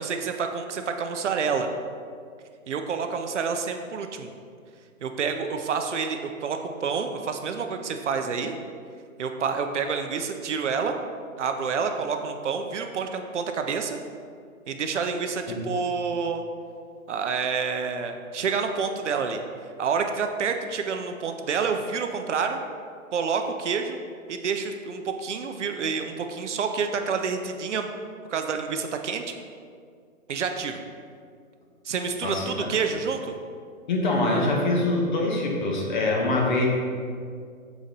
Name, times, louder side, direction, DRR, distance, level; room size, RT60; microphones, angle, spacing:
voice 1, 0.0-1.7 2.7-4.3 5.0-8.5 9.2-10.9 11.4-14.0 14.7-16.4 17.1-19.4 19.8-22.6 23.1-24.0 24.3-27.9 28.3-29.3 30.3-30.8 31.8-33.3, right 5 dB, 60° right, 6 dB, 0.6 m, -28 dB
voice 2, 32.2-32.7 33.9-36.7, left 2 dB, 35° left, -1 dB, 1.0 m, -24 dB
7.0 x 4.1 x 3.9 m, 2.2 s
hypercardioid pair, 165°, 41 cm